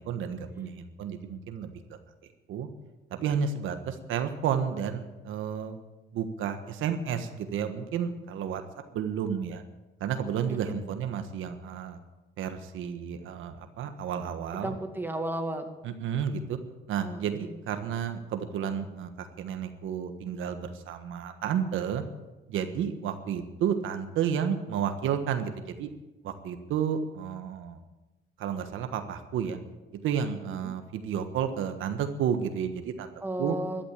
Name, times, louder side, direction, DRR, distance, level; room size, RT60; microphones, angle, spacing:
voice 1, 0.0-2.0 2.5-2.7 3.1-5.8 6.1-8.6 8.9-9.6 10.0-12.0 12.4-14.8 15.8-16.6 16.9-22.0 22.5-25.9 26.2-27.8 28.4-29.6 29.9-33.1 33.4-33.6, right 8 dB, 85° right, 8 dB, 1.4 m, -31 dB
voice 2, 10.5-10.8 14.6-15.7 17.0-17.6 30.6-30.7 33.2-33.9, right 1 dB, 10° right, 4 dB, 2.2 m, -34 dB
13.5 x 12.0 x 7.5 m, 1.1 s
cardioid pair, 90°, 20 cm